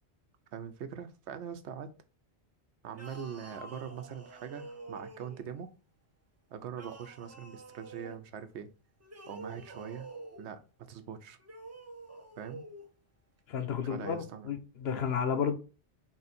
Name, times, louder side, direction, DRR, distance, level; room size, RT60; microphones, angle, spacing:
voice 1, 0.5-1.9 2.8-5.7 6.5-8.7 9.3-10.1 10.4-10.6 10.9-11.4 12.4-12.6 13.8-14.5, right 8 dB, 80° right, 0.9 m, -42 dB
sound 1, 2.9-5.6 6.7-8.2 9.0-10.5 11.4-12.9, right 2 dB, 20° right, 0.4 m, -48 dB
voice 2, 13.5-15.5, left 7 dB, 70° left, 0.9 m, -32 dB
3.7 x 2.6 x 4.1 m
omnidirectional pair, 1.1 m